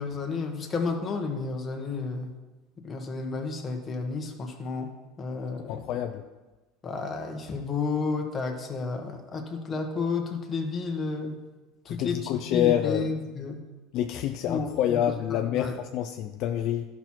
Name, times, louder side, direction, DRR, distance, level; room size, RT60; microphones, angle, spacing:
voice 1, 0.0-2.3 2.8-5.8 6.8-11.4 11.8-13.6 14.5-15.0 15.3-15.7, left 4 dB, 25° left, 2 dB, 1.5 m, -31 dB
voice 2, 5.7-6.2 11.9-13.1 13.9-16.9, left 11 dB, 60° left, 5 dB, 0.5 m, -27 dB
12.0 x 6.1 x 4.5 m, 1.1 s
supercardioid pair, 130°, 0 cm